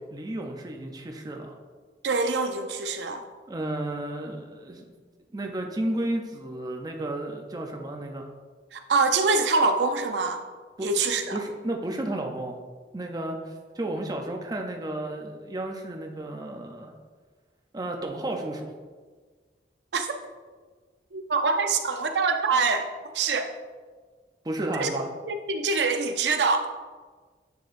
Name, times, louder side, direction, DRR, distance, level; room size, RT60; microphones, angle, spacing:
voice 1, 0.1-1.6 3.5-4.9 5.3-8.3 10.8-10.9 11.3-12.6 12.9-16.9 17.7-18.7 24.4-25.1, right 1 dB, 20° right, 2 dB, 0.5 m, -32 dB
voice 2, 2.0-3.2 8.7-10.4 10.8-11.2 19.9-20.1 21.1-22.9 23.1-23.5 24.8-24.9 25.3-26.7, right 4 dB, 80° right, 7 dB, 0.6 m, -24 dB
9.3 x 4.4 x 2.5 m, 1.5 s
head